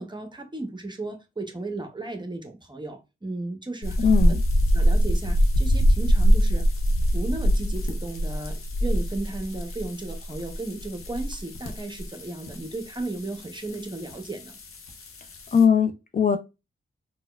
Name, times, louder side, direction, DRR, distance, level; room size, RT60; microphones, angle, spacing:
voice 1, 0.0-4.0 4.3-4.4 4.7-6.6 7.1-14.6, right 2 dB, 20° right, 0.7 m, -35 dB
sound 1, 3.8-15.6, equal, 85° left, 0.6 m, -24 dB
voice 2, 4.0-4.4 15.5-16.4, left 7 dB, 40° left, 0.4 m, -20 dB
4.1 x 2.2 x 2.3 m
cardioid pair, 65°, 21 cm